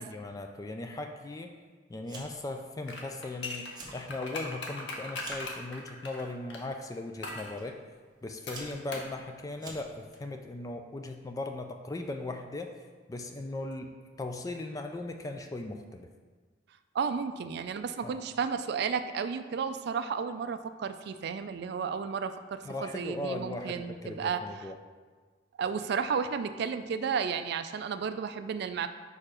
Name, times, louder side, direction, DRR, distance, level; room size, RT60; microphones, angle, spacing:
voice 1, 0.0-1.5 1.9-7.8 8.2-12.7 13.1-16.1 18.0-18.2 22.6-24.8, left 2 dB, 20° left, 5 dB, 0.3 m, -38 dB
Fire, 2.0-2.5 2.8-3.3 3.6-4.0 4.4-5.6 6.4-6.7 7.6-7.7 8.2-10.2, right 2 dB, 25° right, 0.9 m, -47 dB
sound 1, 2.8-6.6 7.2-7.5 8.5-9.1 9.4-9.5, left 2 dB, 70° left, 0.9 m, -39 dB
voice 2, 16.9-22.6 22.9-24.4 25.6-28.9, right 6 dB, 60° right, 9 dB, 0.3 m, -32 dB
4.8 x 4.6 x 5.0 m, 1.4 s
head